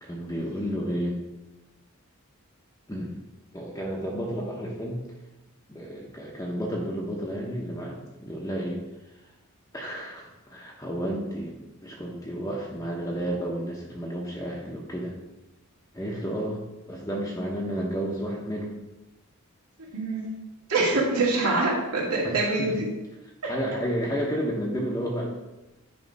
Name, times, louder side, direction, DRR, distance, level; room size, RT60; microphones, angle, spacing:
voice 1, 0.0-1.2 2.9-3.1 3.5-5.0 5.7-8.8 9.7-15.2 15.9-16.6 16.9-18.8 22.2-22.8 23.4-25.3, equal, 15° left, -3 dB, 0.8 m, -31 dB
voice 2, 19.9-20.3 20.7-22.9 23.4-23.5, right 2 dB, 90° right, -5 dB, 2.4 m, -25 dB
9.3 x 3.3 x 5.2 m, 1.0 s
head